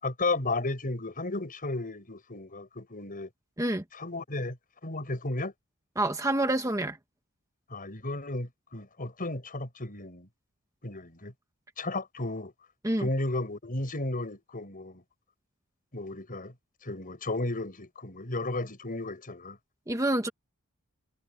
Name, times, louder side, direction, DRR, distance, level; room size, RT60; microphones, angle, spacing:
voice 1, 0.0-3.3 3.9-4.6 4.8-5.5 7.7-10.3 10.8-11.3 11.8-12.5 13.0-15.0 15.9-16.5 16.8-19.6, left 2 dB, 40° left, 6.0 m, -34 dB
voice 2, 6.0-7.0 12.8-13.1 19.9-20.3, right 1 dB, 15° right, 1.7 m, -27 dB
head